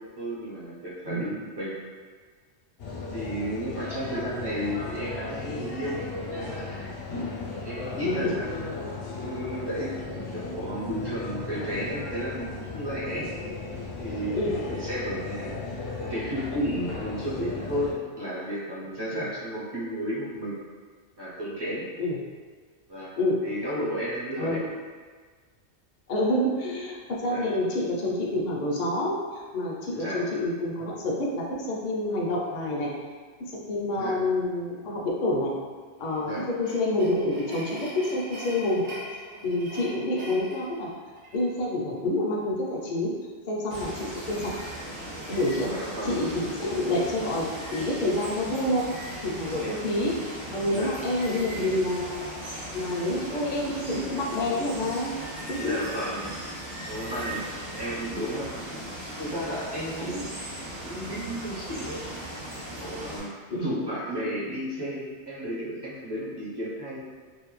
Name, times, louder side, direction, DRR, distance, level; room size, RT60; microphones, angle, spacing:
voice 1, 0.2-1.8 3.1-6.0 6.3-6.8 7.6-8.5 9.2-13.3 14.0-15.6 16.0-20.6 21.2-21.8 22.9-23.1 23.4-24.6 27.3-27.6 29.9-30.3 34.0-34.2 36.2-36.5 45.7-46.2 49.4-49.8 50.7-51.0 55.5-56.3 56.9-57.5 57.8-58.8 59.2-60.3 60.8-62.0 62.7-67.0, equal, 35° right, -8 dB, 0.4 m, -33 dB
sound 1, 2.8-17.9, left 3 dB, 80° left, 0.9 m, -36 dB
voice 2, 26.1-32.9 33.5-35.5 36.0-36.3 36.6-38.8 39.4-40.9 41.3-43.1 43.5-44.5 45.3-45.7 46.0-48.8 49.2-52.3 52.7-55.1 55.5-55.7 63.5-63.7, left 1 dB, 60° left, -3 dB, 0.5 m, -28 dB
sound 2, 36.0-41.5, right 1 dB, 80° right, 1.0 m, -42 dB
Water, 43.7-63.2, right 1 dB, 55° right, 0.9 m, -38 dB
2.5 x 2.1 x 3.0 m, 1.5 s
omnidirectional pair, 1.2 m